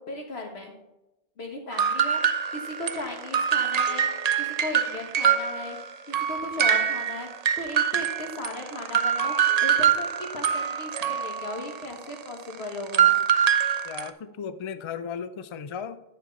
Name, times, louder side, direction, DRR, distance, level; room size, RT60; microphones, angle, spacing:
voice 1, 0.1-0.7 1.4-5.8 6.1-9.3 9.6-13.1, left 1 dB, 80° left, 2 dB, 1.9 m, -36 dB
sound 1, 1.7-5.9 6.1-14.1, right 8 dB, 50° right, 0.5 m, -24 dB
voice 2, 13.8-16.0, left 7 dB, 50° left, 12 dB, 0.3 m, -35 dB
9.8 x 6.0 x 4.0 m, 0.96 s
omnidirectional pair, 1.1 m